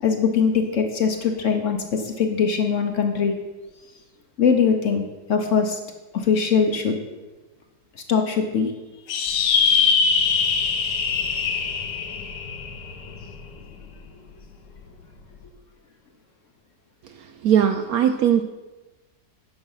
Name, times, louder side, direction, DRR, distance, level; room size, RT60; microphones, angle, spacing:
voice 1, 0.0-3.3 4.4-5.0 5.3-5.8 6.1-7.0 8.1-8.7, left 6 dB, 55° left, 5 dB, 1.0 m, -21 dB
sound 1, 9.1-13.8, left 5 dB, 80° left, 1.5 m, -23 dB
voice 2, 17.0-18.4, right 9 dB, 70° right, 8 dB, 0.9 m, -20 dB
9.6 x 6.2 x 5.6 m, 1.1 s
omnidirectional pair, 1.9 m